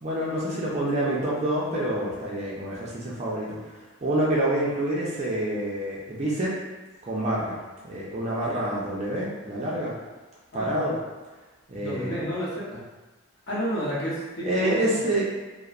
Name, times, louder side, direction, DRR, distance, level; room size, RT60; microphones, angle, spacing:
voice 1, 0.0-3.6 4.0-6.5 7.0-7.6 7.8-9.9 10.5-11.0 11.7-12.2 14.4-15.3, right 1 dB, 30° right, -5 dB, 0.4 m, -27 dB
voice 2, 11.8-12.9 13.5-15.0, equal, 50° left, -8 dB, 0.8 m, -30 dB
2.8 x 2.0 x 2.4 m, 1.2 s
head